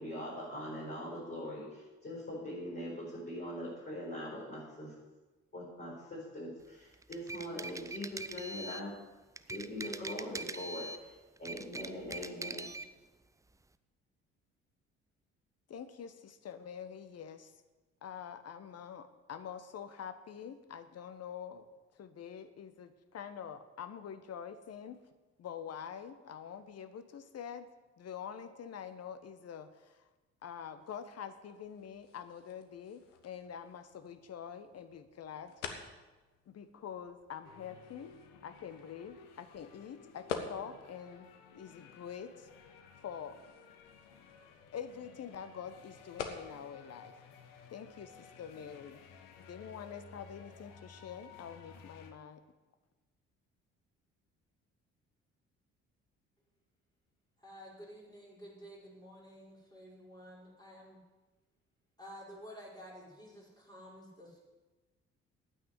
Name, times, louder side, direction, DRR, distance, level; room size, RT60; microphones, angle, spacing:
voice 1, 0.0-4.9 5.5-8.9 9.5-11.1 11.4-12.7, left 1 dB, 25° left, -7 dB, 4.9 m, -42 dB
sound 1, 6.9-8.9 9.4-11.0 11.4-12.9, right 2 dB, 10° right, 0.5 m, -42 dB
voice 2, 15.7-17.6 18.0-25.0 25.4-27.7 28.0-30.1 30.4-35.6 36.5-38.1 38.4-42.5 43.0-43.4 44.7-47.2 47.7-49.0 49.5-52.4, left 8 dB, 45° left, 11 dB, 1.1 m, -46 dB
sound 2, 31.4-49.0, left 6 dB, 80° left, 1.0 m, -50 dB
sound 3, 37.4-52.1, left 5 dB, 60° left, 1.3 m, -56 dB
voice 3, 57.4-61.0 62.0-64.4, equal, 10° left, -4 dB, 5.1 m, -51 dB
9.4 x 8.3 x 8.3 m, 1.2 s
figure-of-eight pair, 50°, 36 cm